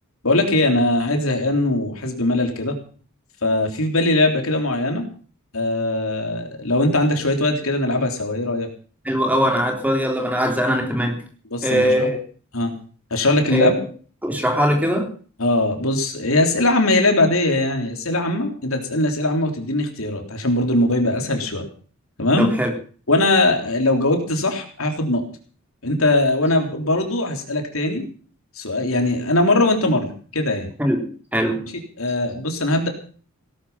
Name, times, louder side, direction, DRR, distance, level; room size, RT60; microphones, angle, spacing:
voice 1, 0.2-2.8 3.4-5.1 5.5-8.7 11.5-12.1 12.5-12.8 13.1-13.7 15.4-21.7 22.2-22.5 23.1-25.3 25.8-28.1 28.6-30.7 32.0-32.9, left 2 dB, 70° left, 4 dB, 3.7 m, -20 dB
voice 2, 9.0-11.2 11.6-12.2 13.5-13.7 14.2-15.1 22.4-22.7 30.8-31.6, equal, 5° right, 3 dB, 3.4 m, -21 dB
18.0 x 12.0 x 5.8 m, 0.42 s
head